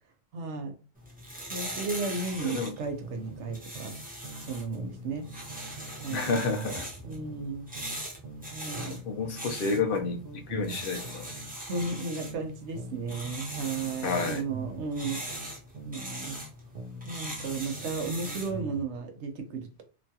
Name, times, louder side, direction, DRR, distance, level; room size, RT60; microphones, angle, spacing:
voice 1, 0.3-0.7 1.5-3.9 4.4-5.3 6.0-6.3 7.0-7.7 8.5-9.0 11.7-15.2 15.8-16.4 17.1-19.8, right 4 dB, 80° right, 1.0 m, -34 dB
sound 1, 1.0-18.6, right 1 dB, 10° right, 0.6 m, -41 dB
voice 2, 2.4-2.7 6.1-6.9 8.9-10.2 10.5-11.2 14.0-14.4, left 4 dB, 60° left, 0.7 m, -30 dB
sound 2, 3.0-4.5 4.8-8.5 8.8-12.5 12.8-16.5 16.8-18.9, right 3 dB, 60° right, 0.7 m, -43 dB
3.0 x 2.2 x 2.7 m
omnidirectional pair, 1.2 m